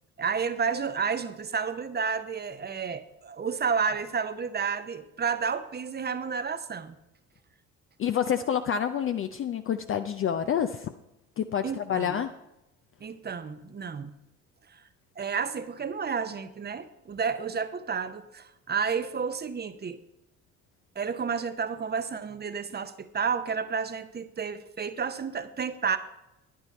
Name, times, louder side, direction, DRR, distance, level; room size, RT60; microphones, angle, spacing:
voice 1, 0.2-7.0 11.6-12.2 13.0-14.1 14.7-14.8 15.2-20.0 20.9-26.0, right 6 dB, 25° right, 12 dB, 0.8 m, -31 dB
voice 2, 8.0-10.9 11.4-12.3, left 8 dB, 30° left, 9 dB, 0.5 m, -28 dB
10.5 x 10.5 x 4.2 m, 0.90 s
figure-of-eight pair, 50°, 41 cm